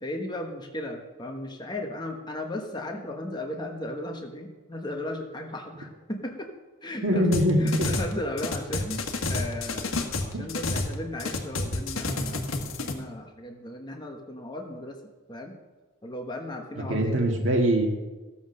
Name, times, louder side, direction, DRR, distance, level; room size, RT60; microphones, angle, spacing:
voice 1, 0.0-6.5 6.8-7.3 7.6-9.0 9.3-15.0 15.3-15.5 16.0-17.2, left 1 dB, 20° left, 3 dB, 1.1 m, -36 dB
voice 2, 7.0-7.9 10.3-10.5 16.8-17.9, right 1 dB, 60° right, 2 dB, 1.8 m, -23 dB
sound 1, 7.3-8.1 8.4-10.9 11.2-12.9, left 2 dB, 70° left, 1.5 m, -29 dB
15.0 x 7.2 x 6.5 m, 1.3 s
head